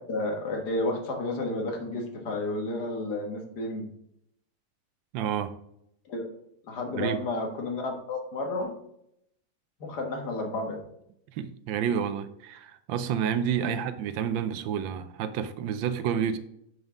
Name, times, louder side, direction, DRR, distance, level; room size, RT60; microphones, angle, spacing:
voice 1, 0.1-3.8 6.1-6.2 6.7-8.7 9.8-10.8 13.6-13.8, left 2 dB, 60° left, 2 dB, 1.8 m, -31 dB
voice 2, 5.1-5.5 6.9-7.2 11.4-16.4, right 8 dB, 90° right, 11 dB, 1.3 m, -29 dB
7.7 x 5.3 x 3.6 m, 0.76 s
omnidirectional pair, 2.0 m